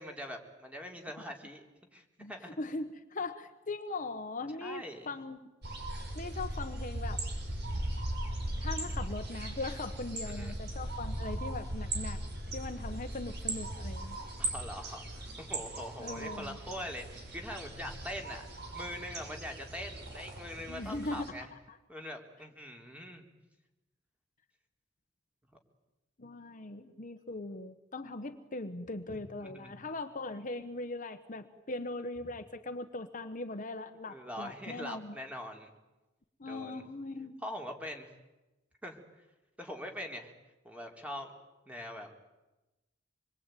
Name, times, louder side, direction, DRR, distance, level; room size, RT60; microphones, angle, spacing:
voice 1, 0.0-2.6 4.6-5.1 10.3-10.6 14.4-18.5 18.7-21.5 21.9-23.3 29.1-29.8 34.1-35.7 36.4-36.8 37.4-38.1 38.8-39.0 39.6-40.3 40.6-41.3 41.7-42.3, equal, 5° right, 3 dB, 3.6 m, -43 dB
voice 2, 2.2-5.4 6.1-7.2 8.6-12.2 12.5-14.2 16.0-16.6 20.7-21.2 21.7-21.8 26.2-35.2 36.4-37.4, left 2 dB, 45° left, 8 dB, 1.3 m, -40 dB
Morning Birds at a Fazenda in Goiás Brazil, 5.6-21.3, right 1 dB, 60° right, 5.6 m, -38 dB
27.0 x 22.0 x 9.3 m, 1.1 s
head